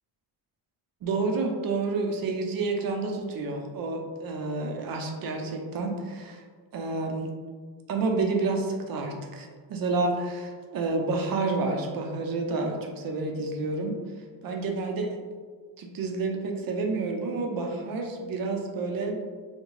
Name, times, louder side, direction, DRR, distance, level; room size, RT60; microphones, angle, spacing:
voice 1, 1.0-6.4 6.7-7.3 7.9-13.9 14.4-15.2 15.8-19.2, right 3 dB, 60° right, 2 dB, 0.6 m, -29 dB
3.4 x 2.2 x 3.1 m, 1.5 s
cardioid pair, 100°, 40 cm